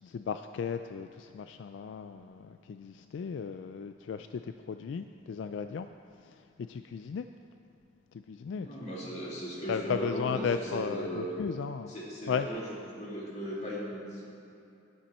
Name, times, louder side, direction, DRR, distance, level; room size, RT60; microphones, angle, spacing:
voice 1, 0.0-5.9 6.2-7.3 8.1-8.7 9.7-11.9 12.3-12.5, left 6 dB, 70° left, 8 dB, 0.3 m, -35 dB
voice 2, 8.5-11.3 11.9-12.7 12.9-14.2, equal, 35° left, -4 dB, 2.3 m, -37 dB
12.5 x 10.5 x 4.3 m, 2.6 s
head